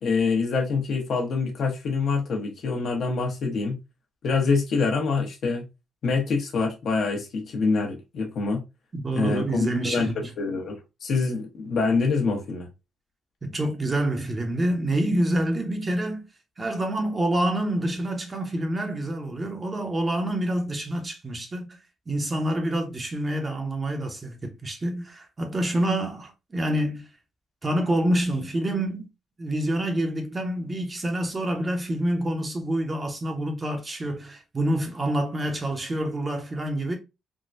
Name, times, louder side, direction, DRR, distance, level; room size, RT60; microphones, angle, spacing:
voice 1, 0.0-3.8 4.2-5.6 6.0-8.6 9.1-12.7, left 4 dB, 60° left, 1.0 m, -25 dB
voice 2, 8.9-10.3 13.4-16.3 16.6-21.8 22.1-27.1 27.6-29.1 29.4-37.0, right 1 dB, 30° right, 0.8 m, -27 dB
3.6 x 2.2 x 2.5 m
cardioid pair, 90°, 0 cm